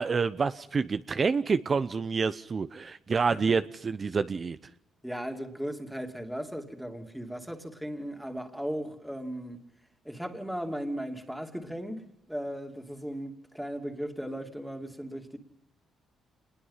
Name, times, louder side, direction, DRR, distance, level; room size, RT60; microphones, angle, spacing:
voice 1, 0.0-4.6, right 5 dB, 40° right, 0.8 m, -28 dB
voice 2, 3.2-3.6 5.0-9.6 10.0-15.4, equal, ahead, 2.9 m, -37 dB
26.5 x 21.0 x 5.7 m
cardioid pair, 90°, 0 cm